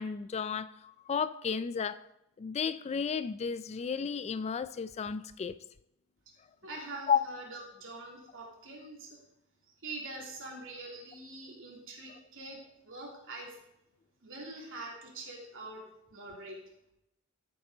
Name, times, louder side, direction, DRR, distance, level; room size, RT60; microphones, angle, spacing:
voice 1, 0.0-2.0 2.4-5.6 7.1-7.2, left 6 dB, 30° left, 0.3 m, -33 dB
voice 2, 6.6-9.2 9.7-13.6 14.2-15.8 16.1-16.6, right 2 dB, 60° right, 3.0 m, -44 dB
14.0 x 8.7 x 3.9 m
head